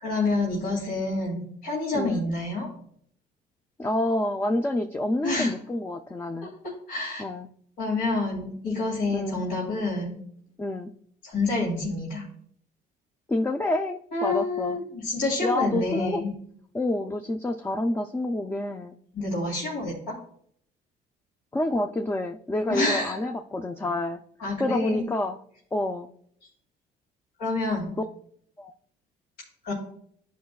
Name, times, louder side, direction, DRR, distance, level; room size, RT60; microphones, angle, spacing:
voice 1, 0.0-2.7 5.2-5.5 6.4-7.2 7.8-10.2 11.2-12.3 14.1-16.4 19.1-20.1 22.7-23.1 24.4-25.1 27.4-27.9 29.6-29.7, left 2 dB, 75° left, -5 dB, 2.5 m, -28 dB
voice 2, 1.9-2.2 3.8-6.5 7.2-7.5 9.1-9.4 10.6-10.9 13.3-14.8 15.4-16.2 16.7-19.0 21.5-24.2 24.6-25.4 25.7-26.1 28.0-28.1 28.6-28.7, left 1 dB, 15° left, 5 dB, 0.4 m, -28 dB
13.0 x 5.1 x 2.3 m, 0.64 s
cardioid pair, 110°, 17 cm